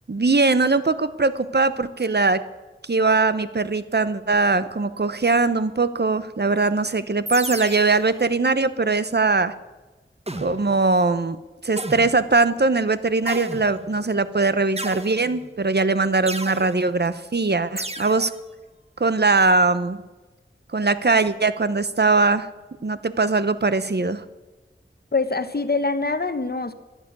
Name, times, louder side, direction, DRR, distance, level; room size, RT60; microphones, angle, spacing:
voice 1, 0.1-2.4 2.8-9.5 10.4-18.3 19.0-20.0 20.7-22.5 22.8-24.2, right 3 dB, 55° right, 13 dB, 0.9 m, -21 dB
sound 1, 7.3-8.1 10.3-10.8 11.8-12.3 13.3-14.0 14.8-15.5 16.3-16.8 17.8-18.3, right 1 dB, 30° right, 1.4 m, -33 dB
voice 2, 25.1-26.7, left 3 dB, 50° left, 11 dB, 1.1 m, -24 dB
11.5 x 11.5 x 9.6 m, 1.1 s
wide cardioid pair, 55°, 21 cm